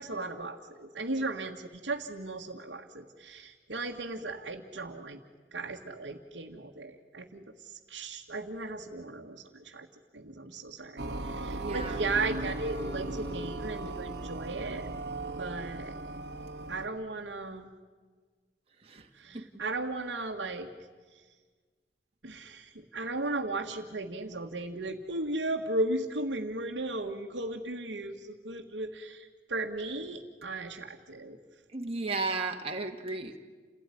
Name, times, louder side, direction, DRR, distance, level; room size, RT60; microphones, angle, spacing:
voice 1, 0.0-5.2 5.5-9.9 10.1-14.9 15.4-15.9 16.7-17.7 19.2-20.7 22.2-31.4, right 2 dB, 90° right, -2 dB, 1.7 m, -36 dB
sound 1, 11.0-16.9, right 2 dB, 65° right, 1.6 m, -37 dB
voice 2, 11.5-12.0 18.8-19.5 31.7-33.4, right 3 dB, 35° right, 2 dB, 1.7 m, -35 dB
29.0 x 17.0 x 9.9 m, 1.5 s
head